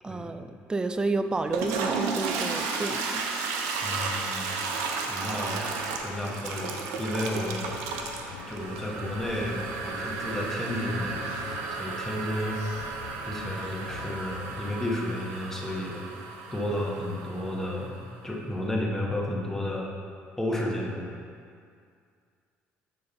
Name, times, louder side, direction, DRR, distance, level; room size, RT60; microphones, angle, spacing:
voice 1, 0.0-3.2, right 3 dB, 15° right, 9 dB, 0.3 m, -30 dB
Toilet flush, 1.4-18.1, right 4 dB, 90° right, 0.6 m, -33 dB
voice 2, 3.8-4.6 5.1-5.7 6.0-7.8 8.5-11.2 11.8-12.6 13.2-16.1 16.5-18.0 18.2-19.9 20.4-21.2, left 1 dB, 10° left, -2 dB, 1.1 m, -32 dB
Wind instrument woodwind instrument, 6.2-7.6 7.9-8.1 8.3-8.5 8.8-9.0 9.3-10.0 10.3-12.2, right 2 dB, 50° right, 1.3 m, -51 dB
sound 1, 7.2-15.1, left 8 dB, 90° left, 0.3 m, -45 dB
6.8 x 3.8 x 4.0 m, 2.2 s
cardioid pair, 95°, 5 cm